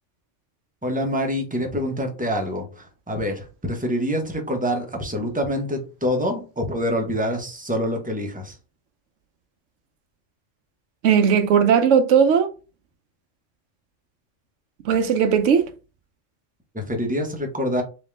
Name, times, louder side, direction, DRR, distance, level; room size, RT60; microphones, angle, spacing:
voice 1, 0.8-8.6 16.7-17.8, equal, 10° right, 0.6 m, -26 dB
voice 2, 11.0-12.5 14.8-15.6, right 7 dB, 80° right, 1.0 m, -17 dB
3.5 x 3.1 x 3.2 m
omnidirectional pair, 1.3 m